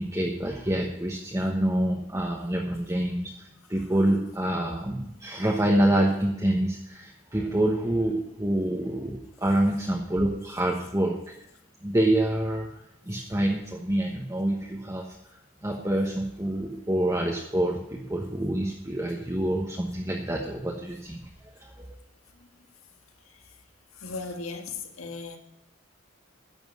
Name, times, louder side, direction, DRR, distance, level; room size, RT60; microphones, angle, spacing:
voice 1, 0.0-11.2 11.8-12.7 13.1-15.1 15.6-21.9, right 1 dB, 15° right, -1 dB, 1.2 m, -27 dB
voice 2, 3.6-4.0 10.8-10.9 22.3-22.5 23.2-23.6 23.9-25.4, left 4 dB, 80° left, 5 dB, 1.7 m, -39 dB
11.0 x 7.2 x 9.7 m, 0.82 s
head